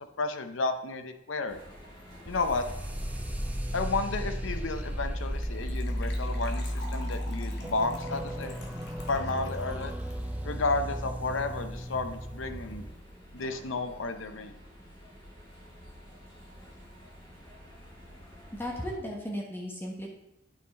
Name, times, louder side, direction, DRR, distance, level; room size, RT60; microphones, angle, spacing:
voice 1, 0.2-1.6 2.3-2.7 3.7-8.6 9.1-9.9 10.4-12.9 13.3-14.5, left 3 dB, 85° left, 8 dB, 0.8 m, -32 dB
sound 1, 1.5-19.0, equal, 30° left, 3.5 m, -51 dB
sound 2, 2.3-12.9, equal, 10° right, 0.6 m, -34 dB
Gurgling / Trickle dribble / Fill (with liquid), 5.4-11.7 11.9-12.0 12.2-12.4 12.7-12.8, left 2 dB, 60° left, 1.5 m, -48 dB
voice 2, 18.5-20.1, equal, 10° left, -1 dB, 1.2 m, -35 dB
9.1 x 5.7 x 4.2 m, 0.85 s
head